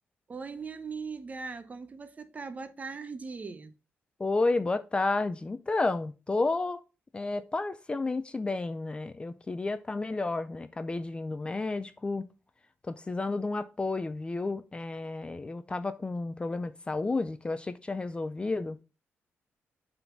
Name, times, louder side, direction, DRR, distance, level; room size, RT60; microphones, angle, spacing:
voice 1, 0.3-3.7, right 4 dB, 35° right, 0.8 m, -39 dB
voice 2, 4.2-6.8 7.1-12.3 12.9-18.8, left 3 dB, 20° left, 0.4 m, -31 dB
5.7 x 3.9 x 5.8 m
cardioid pair, 120°, 5 cm